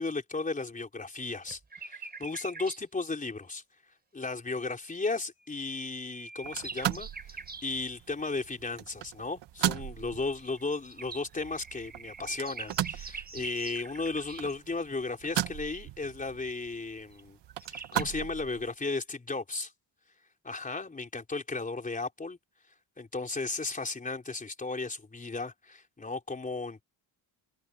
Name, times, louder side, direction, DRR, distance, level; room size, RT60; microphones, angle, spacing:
voice 1, 0.0-3.6 4.1-17.4 17.7-19.7 20.4-22.4 23.0-26.8, left 3 dB, 20° left, 4.3 m, -35 dB
sound 1, 1.5-2.8 5.4-7.7 10.4-14.5 17.2-17.3 17.5-18.0, right 4 dB, 20° right, 5.4 m, -44 dB
sound 2, 6.4-18.7, right 12 dB, 75° right, 1.2 m, -38 dB
wide cardioid pair, 170°, 42 cm